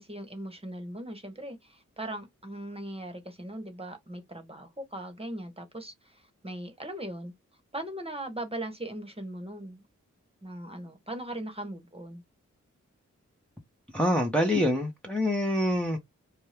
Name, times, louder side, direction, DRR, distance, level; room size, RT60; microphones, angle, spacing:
voice 1, 0.0-6.2 6.4-7.3 7.7-9.8 10.4-12.2, right 1 dB, 20° right, 1.2 m, -39 dB
voice 2, 13.9-16.0, left 1 dB, 5° left, 0.9 m, -26 dB
2.6 x 2.3 x 3.3 m
cardioid pair, 40°, 30 cm